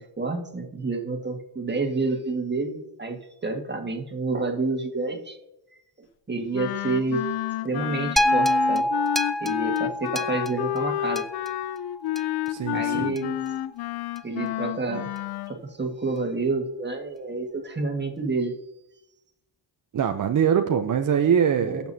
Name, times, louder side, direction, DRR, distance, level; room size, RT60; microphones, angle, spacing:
voice 1, 0.0-5.4 6.3-7.2 7.6-8.9 9.4-11.2 12.7-13.4 14.2-15.1 15.5-18.5 21.6-21.9, right 3 dB, 25° right, 3 dB, 1.8 m, -29 dB
Wind instrument woodwind instrument, 6.5-15.5, left 14 dB, 60° left, 0.5 m, -30 dB
sound 1, 8.2-12.5 13.2-13.3, equal, ahead, 0.5 m, -26 dB
voice 2, 12.5-13.2 19.9-21.9, right 8 dB, 45° right, 5 dB, 0.7 m, -23 dB
18.0 x 7.0 x 2.8 m, 0.88 s
cardioid pair, 90°, 45 cm